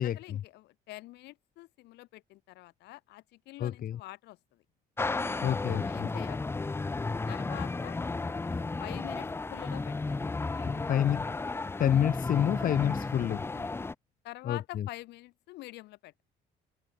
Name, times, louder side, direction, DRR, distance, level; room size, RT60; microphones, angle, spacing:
voice 1, 0.0-4.6 5.7-6.7 7.3-8.0 8.4-10.3 10.5-10.9 13.5-13.8 14.2-16.2, left 18 dB, 85° left, 5.2 m, -46 dB
voice 2, 3.6-4.0 5.4-5.8 10.6-11.2 11.8-13.4 14.5-14.9, left 10 dB, 55° left, 3.5 m, -28 dB
sound 1, 5.0-13.9, left 3 dB, 15° left, 0.7 m, -33 dB
cardioid pair, 110°, 17 cm